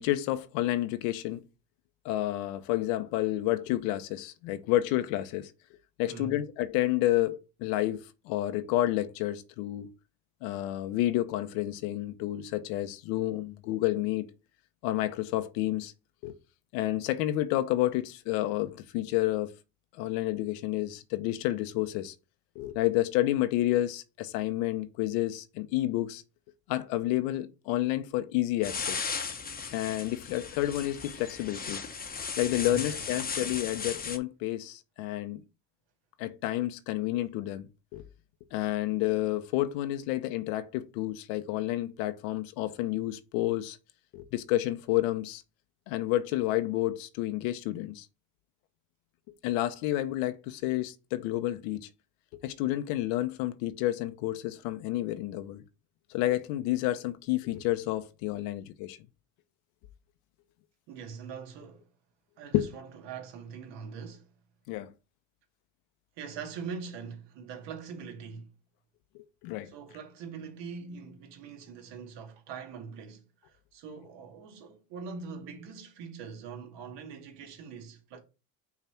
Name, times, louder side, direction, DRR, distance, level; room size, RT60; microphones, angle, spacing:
voice 1, 0.0-1.4 2.0-5.5 6.0-9.9 10.4-14.2 14.8-15.9 16.2-16.3 16.7-19.5 20.0-22.1 22.6-26.2 26.7-29.1 29.7-31.8 32.4-35.4 36.2-38.0 38.5-43.8 44.1-45.4 45.9-48.1 49.4-51.9 52.4-55.6 56.1-59.0 62.5-62.7 64.7-64.9 69.1-69.7, left 15 dB, 70° left, 0.9 m, -30 dB
voice 2, 6.0-6.4 32.6-33.2 60.9-61.9 62.4-64.3 66.2-68.5 69.6-78.2, right 6 dB, 65° right, 2.1 m, -43 dB
sound 1, 28.6-34.2, left 5 dB, 20° left, 0.9 m, -36 dB
5.8 x 3.3 x 5.8 m
supercardioid pair, 105°, 47 cm